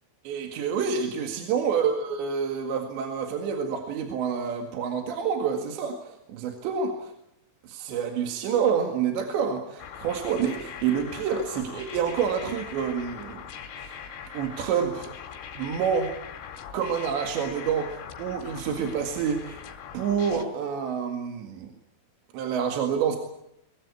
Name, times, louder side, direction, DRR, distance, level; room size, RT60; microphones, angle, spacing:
voice 1, 0.3-7.1 7.6-13.4 13.8-13.9 14.3-15.1 15.6-16.1 16.7-19.6 19.9-21.7 22.3-23.2, right 7 dB, 65° right, 4 dB, 4.0 m, -28 dB
sound 1, 9.8-20.4, left 7 dB, 90° left, 4.9 m, -41 dB
23.0 x 22.5 x 8.4 m, 0.81 s
omnidirectional pair, 5.8 m